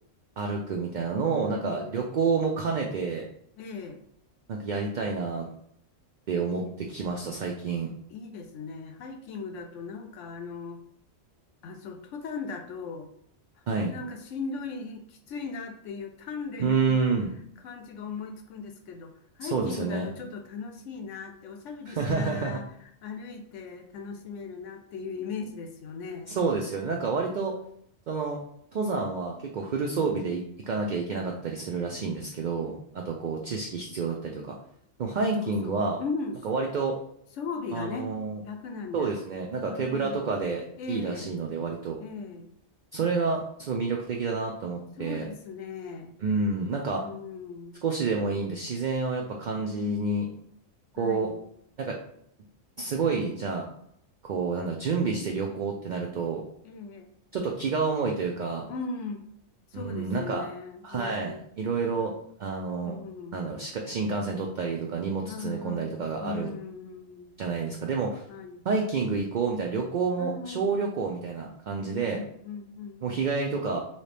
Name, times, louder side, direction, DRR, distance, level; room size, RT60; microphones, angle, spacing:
voice 1, 0.4-3.2 4.5-5.5 6.3-7.9 13.7-13.9 16.6-17.3 19.4-20.1 21.9-22.6 26.3-27.5 28.1-28.4 28.7-34.6 35.0-36.0 36.4-37.0 37.7-38.4 38.9-40.6 40.9-42.0 42.9-45.2 46.2-47.0 47.8-50.3 51.0-51.3 51.8-52.0 52.8-53.7 54.2-56.4 57.3-58.6 59.7-60.5 60.8-62.1 62.4-63.0 63.3-66.5 67.4-68.2 68.6-72.2 73.0-73.8, right 4 dB, 70° right, 1 dB, 0.4 m, -29 dB
voice 2, 1.2-2.0 3.6-4.0 6.5-6.7 8.1-10.8 11.6-13.1 13.9-17.2 17.6-26.4 35.4-36.4 37.4-38.1 38.4-39.1 39.5-40.2 40.8-41.4 42.0-42.5 45.0-46.1 47.0-47.8 49.6-50.4 51.0-51.4 56.6-57.1 58.7-59.3 59.7-61.4 62.0-62.2 62.8-63.6 65.3-67.4 68.3-68.6 70.2-71.0 71.8-73.1, left 4 dB, 75° left, 5 dB, 0.9 m, -38 dB
3.2 x 2.7 x 3.3 m, 0.69 s
omnidirectional pair, 1.3 m